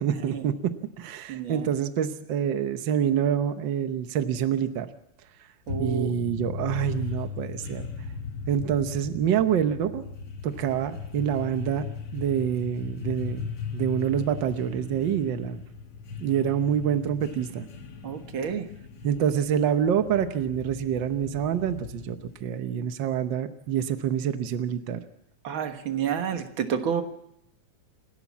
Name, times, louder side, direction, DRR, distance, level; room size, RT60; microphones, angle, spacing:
voice 1, 0.0-4.9 5.8-7.9 8.5-10.0 10.4-15.6 16.2-17.7 19.0-25.0, right 9 dB, 75° right, 9 dB, 1.0 m, -27 dB
voice 2, 1.3-1.7 5.7-6.1 18.0-18.7 25.4-27.0, right 8 dB, 50° right, 7 dB, 1.8 m, -29 dB
sound 1, 5.7-22.5, left 6 dB, 45° left, 2.2 m, -38 dB
28.0 x 13.0 x 7.3 m, 0.80 s
omnidirectional pair, 3.4 m